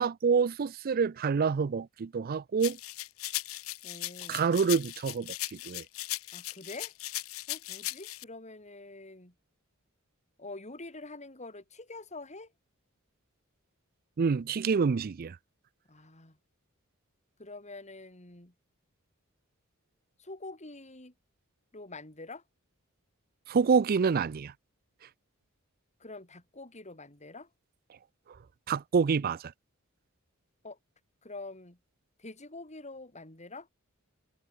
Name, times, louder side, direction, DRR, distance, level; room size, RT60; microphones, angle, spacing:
voice 1, 0.0-2.8 4.3-5.3 5.7-5.8 14.2-15.3 23.5-24.5 28.7-29.4, right 5 dB, 45° right, 0.4 m, -27 dB
sound 1, 2.6-8.2, left 17 dB, 75° left, 0.7 m, -38 dB
voice 2, 3.8-4.4 6.3-6.9 7.5-9.3 10.4-12.5 15.9-16.4 17.4-18.5 20.2-21.1 21.7-22.4 26.0-27.5 30.6-30.8 31.2-31.8 32.2-33.7, left 2 dB, 35° left, 4.8 m, -46 dB
head